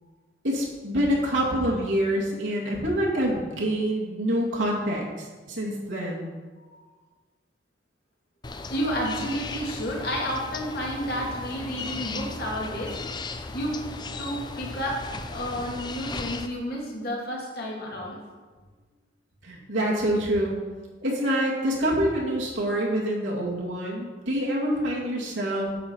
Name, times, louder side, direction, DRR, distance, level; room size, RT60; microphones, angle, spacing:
voice 1, 0.4-6.3 19.4-20.5 21.0-25.7, equal, 80° right, -4 dB, 2.1 m, -26 dB
sound 1, 8.4-16.5, left 3 dB, 25° left, 0.4 m, -36 dB
voice 2, 8.7-13.0 13.5-13.8 14.2-15.0 15.3-18.2, equal, 55° left, -2 dB, 2.1 m, -31 dB
9.1 x 7.0 x 4.5 m, 1.4 s
head